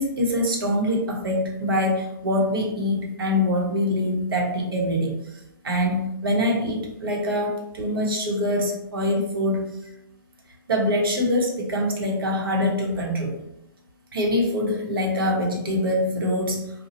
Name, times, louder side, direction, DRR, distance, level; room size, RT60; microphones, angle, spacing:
voice 1, 0.0-5.2 5.6-9.7 10.7-13.4 14.1-16.6, left 1 dB, 80° right, 0 dB, 1.2 m, -24 dB
4.4 x 2.3 x 2.8 m, 0.82 s
hypercardioid pair, 145°, 12 cm